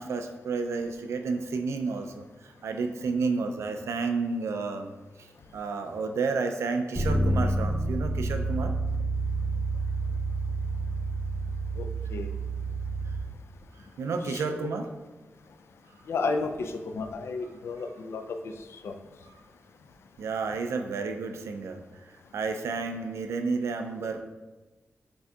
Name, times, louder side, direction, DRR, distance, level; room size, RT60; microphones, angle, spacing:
voice 1, 0.0-4.9 5.2-8.7 14.0-14.9 20.2-21.8 22.3-24.2, right 4 dB, 85° right, 6 dB, 0.4 m, -31 dB
Bass guitar, 6.9-13.2, right 2 dB, 5° left, 0.6 m, -29 dB
voice 2, 16.1-18.2 18.8-18.9, left 4 dB, 70° left, 6 dB, 0.3 m, -32 dB
5.8 x 2.7 x 2.3 m, 1.2 s
wide cardioid pair, 115°, 5 cm